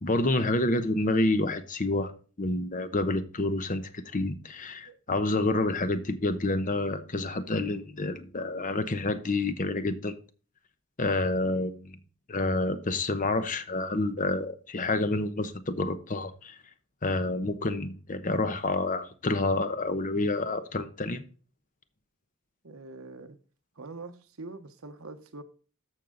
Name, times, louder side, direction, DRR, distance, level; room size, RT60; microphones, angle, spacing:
voice 1, 0.0-2.1 2.4-10.1 11.0-12.0 12.3-16.6 17.0-21.2, left 2 dB, 35° left, 0.9 m, -28 dB
voice 2, 22.6-23.4 23.8-25.4, right 3 dB, 70° right, 1.1 m, -44 dB
14.0 x 4.7 x 3.9 m
head